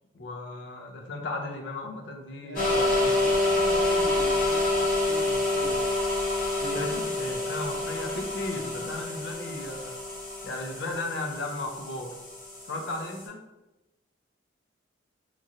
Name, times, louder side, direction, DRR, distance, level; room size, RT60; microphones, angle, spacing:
voice 1, 0.1-3.2 6.7-10.0 10.4-12.1 12.7-13.4, left 2 dB, 65° left, 3 dB, 0.5 m, -35 dB
voice 2, 2.4-5.8 6.6-6.8, right 1 dB, 75° right, -1 dB, 0.5 m, -40 dB
sound 1, 2.6-13.3, left 2 dB, 45° left, 0.8 m, -28 dB
2.9 x 2.7 x 2.5 m, 1.0 s
head